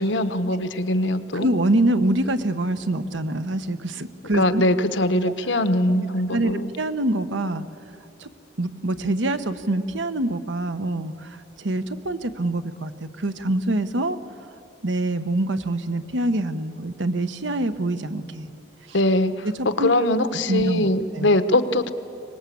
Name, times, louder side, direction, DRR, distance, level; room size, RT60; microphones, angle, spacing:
voice 1, 0.0-1.5 4.3-6.7 18.9-21.9, left 1 dB, 80° left, 11 dB, 1.1 m, -22 dB
voice 2, 1.3-4.6 5.2-5.3 6.3-7.6 8.2-8.3 8.6-14.2 14.8-18.5 19.6-19.9 20.5-21.3, right 1 dB, 85° right, 10 dB, 1.1 m, -25 dB
23.5 x 20.0 x 8.5 m, 2.6 s
head